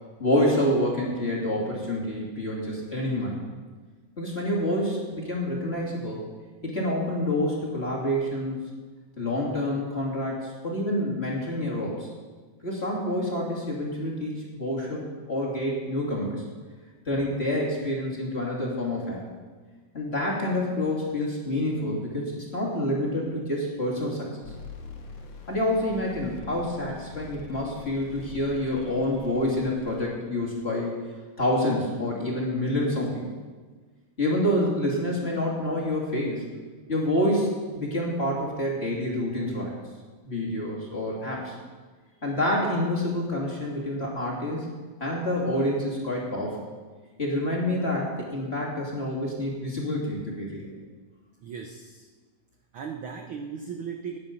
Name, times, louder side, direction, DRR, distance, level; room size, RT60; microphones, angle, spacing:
voice 1, 0.2-3.4 4.2-6.2 6.6-8.6 9.2-12.1 12.6-16.4 17.1-19.2 19.9-24.3 25.5-30.9 31.4-33.2 34.2-36.4 36.9-39.8 40.2-41.5 42.2-44.7 45.0-46.6 47.2-50.7, left 1 dB, 20° left, -3 dB, 2.6 m, -27 dB
sound 1, 24.4-30.1, left 4 dB, 60° left, 2.4 m, -44 dB
voice 2, 51.4-52.1 52.7-54.2, right 6 dB, 65° right, 3 dB, 1.3 m, -37 dB
18.0 x 10.0 x 5.3 m, 1.4 s
omnidirectional pair, 3.3 m